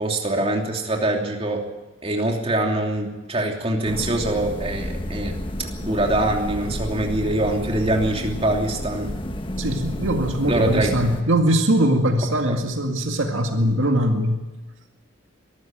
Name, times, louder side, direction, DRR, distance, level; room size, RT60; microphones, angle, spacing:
voice 1, 0.0-1.6 2.0-5.3 5.6-9.1 10.5-10.9 12.5-12.6, right 1 dB, 30° right, 1 dB, 3.0 m, -24 dB
sound 1, 3.8-11.2, left 1 dB, 25° left, 1.4 m, -31 dB
voice 2, 9.6-14.5, right 1 dB, 75° right, 4 dB, 2.0 m, -21 dB
23.0 x 14.0 x 9.1 m, 1.1 s
head